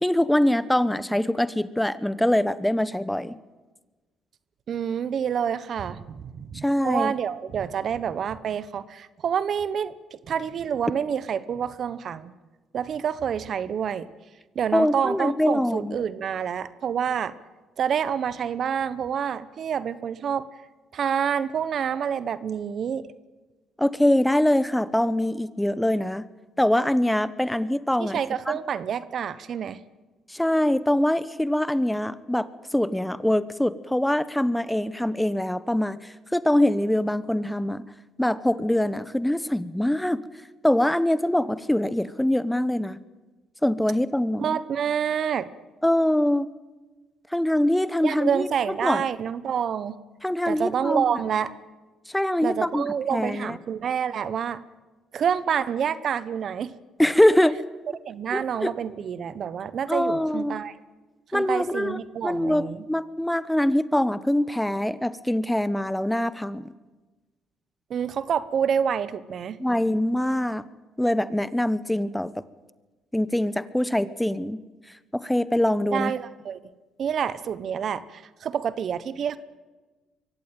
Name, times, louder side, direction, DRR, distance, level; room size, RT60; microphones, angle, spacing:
voice 1, 0.0-3.3 6.6-7.1 14.7-16.0 23.8-26.2 26.6-28.2 28.5-28.6 30.3-37.8 38.2-40.2 40.6-43.0 43.6-44.6 45.8-46.5 47.3-48.5 48.8-49.0 50.2-51.0 52.1-53.6 57.0-57.6 58.3-58.7 59.9-60.5 61.3-66.6 69.6-70.6 71.0-72.4 73.1-74.6 75.1-76.1, left 1 dB, 5° left, 16 dB, 1.1 m, -23 dB
voice 2, 4.7-12.3 12.7-14.1 14.5-17.3 17.8-20.5 20.9-23.1 28.0-29.8 44.4-45.5 48.0-50.0 50.5-51.6 52.4-54.6 55.1-56.7 58.1-60.7 61.3-62.8 67.9-69.6 75.9-76.6 77.0-79.4, right 8 dB, 60° right, 16 dB, 1.2 m, -28 dB
23.5 x 16.5 x 9.2 m, 1.2 s
supercardioid pair, 65°, 0 cm